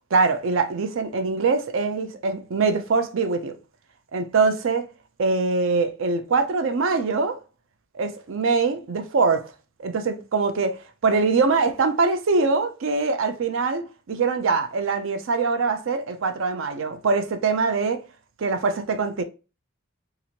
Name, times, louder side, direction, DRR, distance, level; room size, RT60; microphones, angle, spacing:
voice 1, 0.1-3.6 4.1-4.9 5.2-7.4 7.9-9.5 9.8-18.0 18.4-19.2, right 4 dB, 65° right, 0.4 m, -23 dB
2.9 x 2.5 x 2.8 m
head